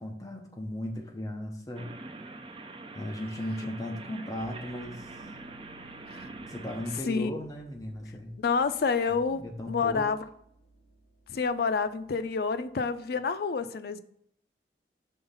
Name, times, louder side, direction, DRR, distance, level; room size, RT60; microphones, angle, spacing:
voice 1, 0.0-1.9 2.9-5.1 6.5-8.3 9.3-10.1, left 1 dB, 20° left, 1 dB, 0.8 m, -36 dB
sound 1, 1.8-7.0, right 3 dB, 30° right, 0.5 m, -44 dB
sound 2, 4.4-13.1, right 2 dB, 75° left, 1.2 m, -58 dB
voice 2, 8.4-10.2 11.3-14.0, left 5 dB, 60° left, 11 dB, 0.4 m, -28 dB
5.6 x 3.9 x 5.5 m, 0.70 s
head